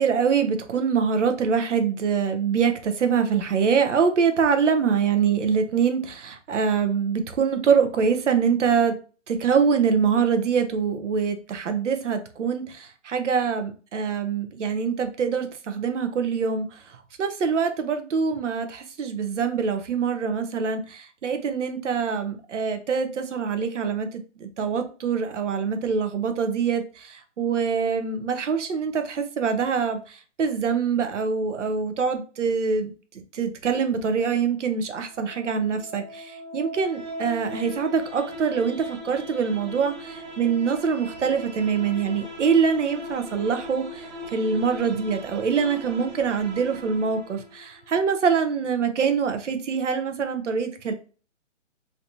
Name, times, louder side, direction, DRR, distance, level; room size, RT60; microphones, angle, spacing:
voice 1, 0.0-9.0 9.3-16.8 17.2-32.9 33.3-50.9, right 6 dB, 70° right, 7 dB, 0.8 m, -24 dB
sound 1, 34.9-47.9, equal, 35° right, 0.8 m, -39 dB
3.2 x 2.7 x 2.8 m, 0.38 s
hypercardioid pair, 155°, 37 cm